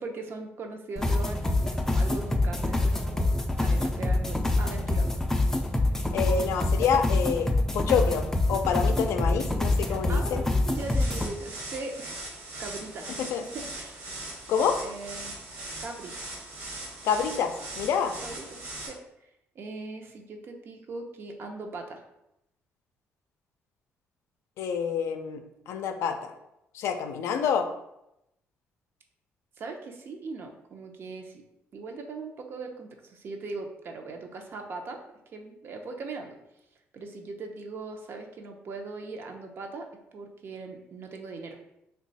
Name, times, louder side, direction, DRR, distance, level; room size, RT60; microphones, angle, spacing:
voice 1, 0.0-5.2 9.9-12.2 12.6-14.0 14.5-14.6 14.8-15.3 15.8-16.3 18.2-18.6 18.9-19.0 19.6-22.0 29.6-31.4 31.7-35.0 35.3-36.4 36.9-41.6, right 3 dB, 55° right, 3 dB, 0.6 m, -40 dB
sound 1, 1.0-11.3, left 2 dB, 10° left, 0.3 m, -26 dB
voice 2, 6.1-10.4 13.2-13.4 14.5-14.8 17.0-18.2 24.6-26.3 26.7-27.7, left 7 dB, 80° left, 6 dB, 0.4 m, -27 dB
sound 2, 10.7-18.9, right 2 dB, 85° right, 1.1 m, -40 dB
3.0 x 2.3 x 3.9 m, 0.85 s
cardioid pair, 100°, 5 cm